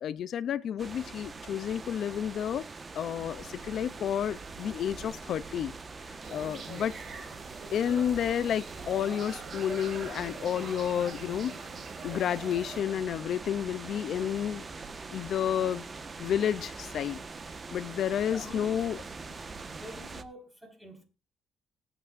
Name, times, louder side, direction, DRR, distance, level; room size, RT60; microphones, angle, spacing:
voice 1, 0.0-2.6 2.9-5.7 6.1-6.9 7.7-11.5 12.0-14.7 15.1-15.9 16.2-17.2 17.7-19.0, left 9 dB, 70° left, 17 dB, 0.5 m, -30 dB
sound 1, 0.8-20.2, right 4 dB, 35° right, 1.2 m, -43 dB
sound 2, 6.2-12.8, right 5 dB, 50° right, 2.3 m, -45 dB
voice 2, 6.6-7.0 11.8-12.0 18.2-18.7 19.6-21.0, left 1 dB, 10° right, 3 dB, 4.5 m, -48 dB
20.5 x 8.8 x 2.5 m, 0.29 s
cardioid pair, 90°, 0 cm